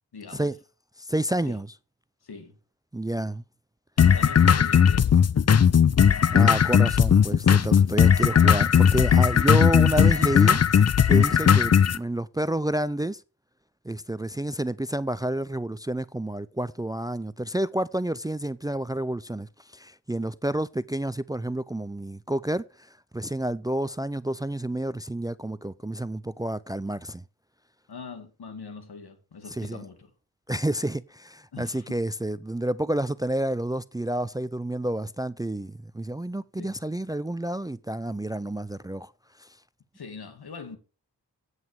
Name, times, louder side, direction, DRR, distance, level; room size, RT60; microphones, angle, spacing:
voice 1, 0.1-0.5 1.5-1.6 2.2-2.6 4.0-5.2 9.4-9.7 27.9-30.1 31.5-32.0 36.6-36.8 39.9-40.8, left 5 dB, 80° left, 2.3 m, -42 dB
voice 2, 1.0-1.7 2.9-3.4 6.3-13.2 13.8-22.6 23.1-27.2 29.6-29.8 30.5-39.1 39.4-39.5, right 1 dB, 10° right, 0.4 m, -29 dB
sound 1, 4.0-12.0, left 7 dB, 40° left, 0.6 m, -18 dB
9.3 x 8.0 x 4.8 m
cardioid pair, 55°, 38 cm